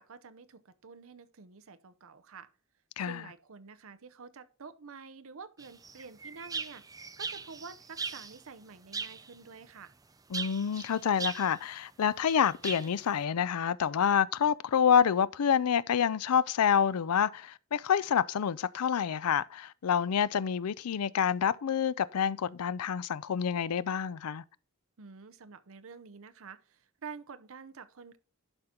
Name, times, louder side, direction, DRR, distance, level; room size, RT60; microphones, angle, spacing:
voice 1, 0.0-2.5 3.0-9.9 25.0-28.2, right 5 dB, 65° right, 0.7 m, -49 dB
sound 1, 5.6-8.4 8.9-9.4 10.3-11.6 12.3-13.0, right 5 dB, 15° right, 0.5 m, -39 dB
voice 2, 10.3-24.4, left 8 dB, 90° left, 0.4 m, -28 dB
11.5 x 4.4 x 3.7 m
head